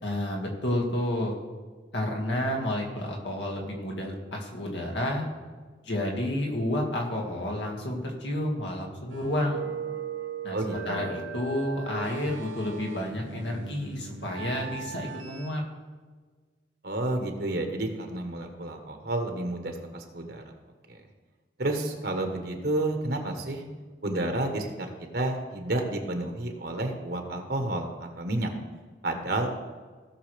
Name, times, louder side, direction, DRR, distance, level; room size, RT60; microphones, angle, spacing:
voice 1, 0.0-1.3 1.9-5.3 5.8-9.7 10.4-10.6 10.9-15.6, left 1 dB, 70° left, 0 dB, 1.9 m, -30 dB
sound 1, 9.1-15.5, right 6 dB, 85° right, 1.0 m, -38 dB
voice 2, 10.5-11.2 16.8-20.4 20.9-21.0 21.6-23.6 24.0-28.5 29.0-29.6, right 1 dB, 55° right, 4 dB, 1.1 m, -30 dB
17.0 x 6.3 x 3.3 m, 1.5 s
head